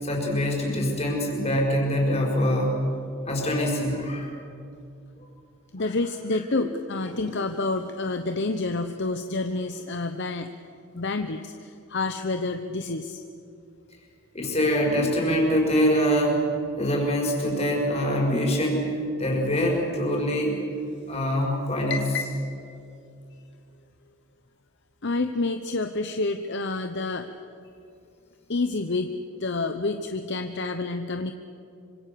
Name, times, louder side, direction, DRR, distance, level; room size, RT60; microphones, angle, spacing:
voice 1, 0.0-2.8 3.3-4.3 7.1-7.3 14.3-16.4 16.8-18.9 19.2-20.6 21.1-22.0, equal, 30° left, -1 dB, 5.3 m, -24 dB
voice 2, 5.7-10.5 10.9-13.2 21.9-22.3 23.3-23.5 25.0-27.3 28.5-29.1 29.4-31.3, left 3 dB, 55° left, 7 dB, 1.0 m, -28 dB
26.0 x 25.0 x 6.9 m, 2.6 s
head